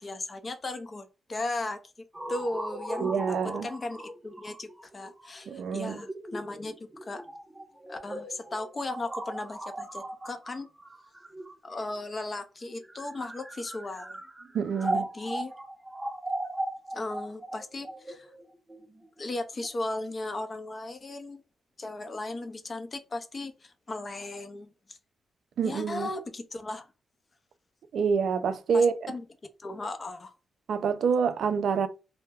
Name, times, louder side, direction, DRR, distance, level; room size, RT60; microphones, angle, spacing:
voice 1, 0.0-3.4 3.6-7.2 7.9-10.7 11.6-14.2 14.8-15.5 16.9-18.3 19.2-21.4 21.8-25.0 25.6-26.9 28.7-29.3 29.6-30.3, left 2 dB, 40° left, 0.5 m, -36 dB
sound 1, 2.1-12.0 12.7-19.7, right 1 dB, 20° right, 0.6 m, -38 dB
voice 2, 3.0-3.7 5.5-6.0 14.5-15.1 25.6-26.1 27.9-28.9 30.7-31.9, right 6 dB, 75° right, 0.3 m, -26 dB
2.2 x 2.0 x 3.3 m
supercardioid pair, 60°, 0 cm